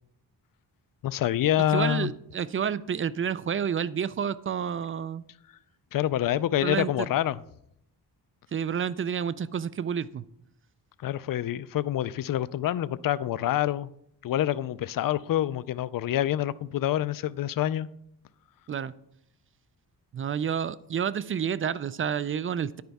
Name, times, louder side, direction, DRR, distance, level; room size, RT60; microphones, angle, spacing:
voice 1, 1.0-2.1 5.9-7.4 11.0-13.9 14.2-17.9, left 12 dB, 55° left, 0.5 m, -27 dB
voice 2, 1.7-5.2 6.6-7.1 8.5-10.2 18.7-18.9 20.1-22.8, right 7 dB, 35° right, 0.4 m, -29 dB
9.8 x 9.3 x 3.5 m
cardioid pair, 100°, 40 cm